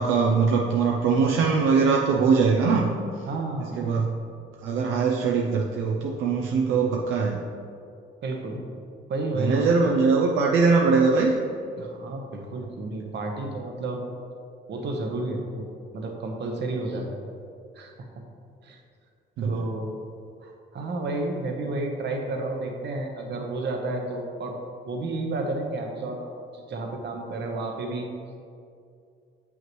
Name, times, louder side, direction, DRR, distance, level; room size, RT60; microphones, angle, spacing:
voice 1, 0.0-2.9 3.8-4.1 4.6-7.4 9.3-11.4 19.4-19.6, right 5 dB, 85° right, 0 dB, 0.5 m, -21 dB
voice 2, 3.3-3.8 8.2-8.6 9.1-9.8 11.8-14.0 14.7-15.7 15.9-17.1 17.7-17.9 18.6-18.8 19.4-20.0 20.4-24.6 24.9-28.1, right 2 dB, 60° right, 2 dB, 1.0 m, -31 dB
7.5 x 5.6 x 3.1 m, 2.4 s
cardioid pair, 90°, 20 cm